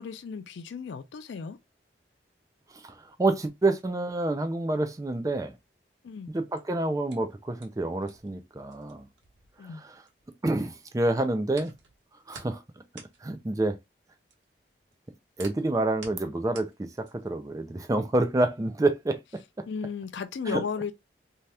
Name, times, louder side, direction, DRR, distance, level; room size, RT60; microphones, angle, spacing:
voice 1, 0.0-1.6 6.0-6.3 9.6-9.8 19.7-20.9, left 6 dB, 80° left, 0.4 m, -35 dB
voice 2, 2.7-5.5 6.3-9.1 9.8-9.9 10.4-11.7 12.3-12.6 12.9-13.8 15.4-19.2 20.5-20.6, right 2 dB, 20° right, 0.4 m, -28 dB
sound 1, 6.5-10.5 10.8-17.4, right 4 dB, 80° right, 1.0 m, -50 dB
2.8 x 2.3 x 3.2 m
head